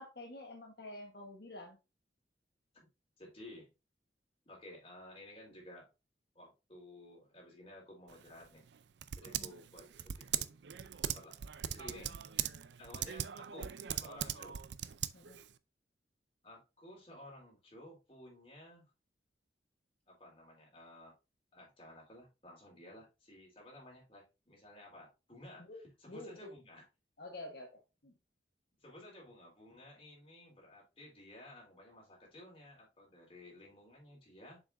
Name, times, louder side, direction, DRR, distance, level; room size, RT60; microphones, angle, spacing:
voice 1, 0.0-1.8 9.2-9.5 15.1-15.4 25.6-25.8 26.1-26.5 27.2-28.1, left 1 dB, 60° left, 1.3 m, -48 dB
voice 2, 3.2-3.7 4.5-5.9 6.3-8.6 9.2-10.5 11.0-11.3 11.7-12.1 12.8-13.7 14.0-14.6 16.4-18.9 20.1-21.1 21.5-26.9 28.8-34.6, left 1 dB, 30° left, 4.1 m, -54 dB
Typing, 8.1-15.5, right 10 dB, 75° right, 0.5 m, -40 dB
7.2 x 5.9 x 2.6 m
head